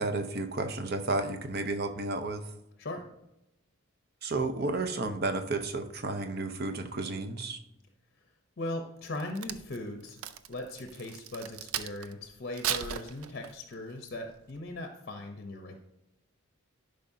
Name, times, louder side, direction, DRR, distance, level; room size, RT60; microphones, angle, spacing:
voice 1, 0.0-2.4 4.2-7.6, right 3 dB, 45° right, 7 dB, 0.7 m, -32 dB
voice 2, 8.6-10.2 10.5-15.8, left 1 dB, 45° left, 5 dB, 0.7 m, -39 dB
Crack, 9.0-12.1 12.5-13.7 14.3-14.5, right 10 dB, 80° right, 0.5 m, -36 dB
11.0 x 5.1 x 2.7 m, 0.89 s
head